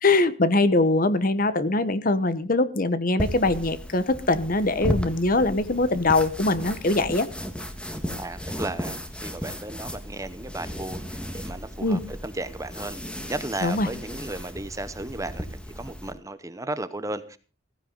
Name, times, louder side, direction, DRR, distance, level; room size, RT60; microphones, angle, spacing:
voice 1, 0.0-7.3 11.8-12.0 13.6-13.9, left 2 dB, 45° left, 14 dB, 1.0 m, -22 dB
sound 1, 3.2-16.1, equal, 5° left, 1.6 m, -35 dB
voice 2, 8.1-13.0 13.3-17.4, right 2 dB, 15° right, 13 dB, 0.8 m, -35 dB
15.5 x 15.0 x 3.9 m, 0.36 s
head